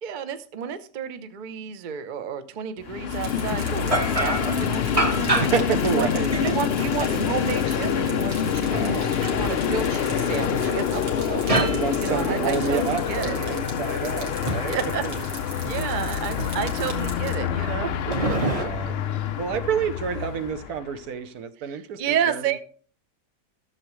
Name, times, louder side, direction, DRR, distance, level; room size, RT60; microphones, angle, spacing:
voice 1, 0.0-5.5 5.9-6.1 6.4-11.4 12.0-13.4 14.7-15.0 15.6-18.9 21.6-22.6, right 7 dB, 50° right, 0.6 m, -31 dB
Train, 2.8-20.9, left 8 dB, 75° left, 0.5 m, -26 dB
sound 1, 3.1-17.3, right 4 dB, 85° right, 2.3 m, -42 dB
sound 2, 3.3-3.4 3.9-5.7 6.1-7.7 8.4-10.4 10.7-12.8 13.1-14.8 15.1-15.3 15.6-16.1 16.4-17.1 17.4-17.7 18.1-18.6, right 2 dB, 25° right, 0.9 m, -29 dB
voice 2, 5.4-6.3 8.6-9.1 11.5-15.2 15.8-16.1 18.3-18.9 19.4-22.6, right 7 dB, 70° right, 1.2 m, -29 dB
13.5 x 7.2 x 3.1 m
omnidirectional pair, 1.7 m